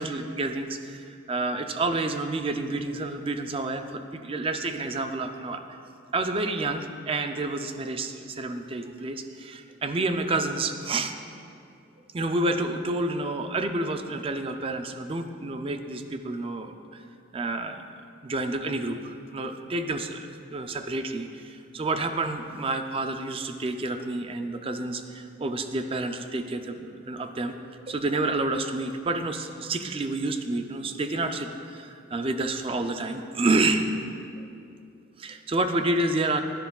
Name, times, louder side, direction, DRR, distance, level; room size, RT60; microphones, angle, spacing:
voice 1, 0.0-5.8 6.1-11.1 12.1-17.0 17.3-27.5 27.9-33.9 35.2-36.4, right 2 dB, 25° right, 7 dB, 0.4 m, -29 dB
10.5 x 10.5 x 2.3 m, 2.4 s
head